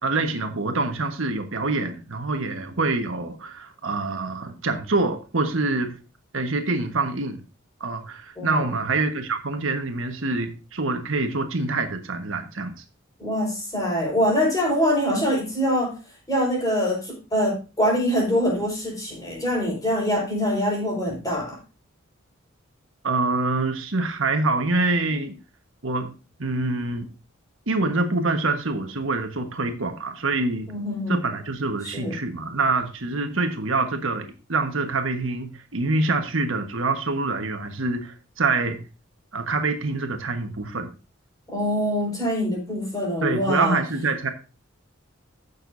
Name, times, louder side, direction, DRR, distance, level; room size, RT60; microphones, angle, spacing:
voice 1, 0.0-5.9 6.3-7.4 7.8-12.8 23.0-25.4 25.8-26.1 26.4-27.1 27.7-30.7 31.1-38.8 39.3-40.9 43.2-44.3, right 3 dB, 70° right, 6 dB, 1.4 m, -25 dB
voice 2, 8.4-8.7 13.2-15.9 16.3-21.6 30.7-31.2 31.9-32.2 41.5-43.8, equal, 15° left, 0 dB, 5.0 m, -24 dB
15.5 x 6.7 x 2.6 m, 0.32 s
head